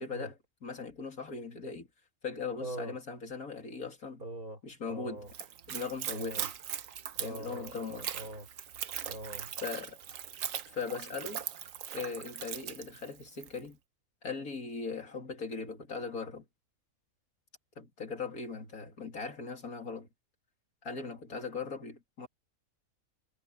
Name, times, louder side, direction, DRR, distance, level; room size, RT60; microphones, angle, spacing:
voice 1, 0.0-1.9 2.2-4.2 4.6-5.3 5.7-6.5 7.2-8.1 9.6-10.0 10.7-11.4 11.9-13.8 14.2-16.4 17.8-20.1 20.8-22.3, left 4 dB, 85° left, 3.3 m, -39 dB
voice 2, 2.6-2.9 4.2-5.3 6.1-6.5 7.2-8.5 9.1-9.5, right 1 dB, 85° right, 5.2 m, -42 dB
Splash splatter / Trickle dribble, 5.3-13.6, right 9 dB, 70° right, 1.3 m, -40 dB
omnidirectional pair, 1.5 m